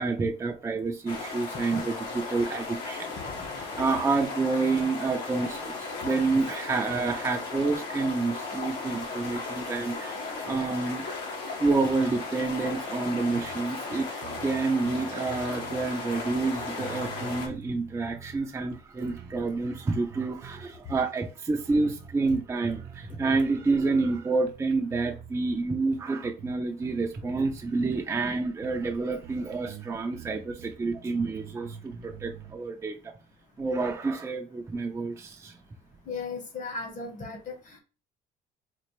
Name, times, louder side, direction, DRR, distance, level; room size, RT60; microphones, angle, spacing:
voice 1, 0.0-3.1 3.8-10.2 10.5-11.0 11.6-14.1 14.4-33.1 33.6-35.6, right 3 dB, 15° right, 3 dB, 0.4 m, -28 dB
sound 1, 1.1-17.5, left 3 dB, 85° left, 1.5 m, -36 dB
sound 2, 13.3-13.7 13.9-14.0 14.2-15.9 16.3-18.4 18.7-20.6 21.0-21.2 21.6-23.2 23.5-24.2 24.5-25.5 25.9-28.0 28.3-28.4 28.6-29.0 29.2-32.5, right 8 dB, 65° right, 0.7 m, -46 dB
voice 2, 36.1-37.8, left 4 dB, 50° left, 5 dB, 1.2 m, -36 dB
4.2 x 2.5 x 3.0 m, 0.33 s
cardioid pair, 110°, 17 cm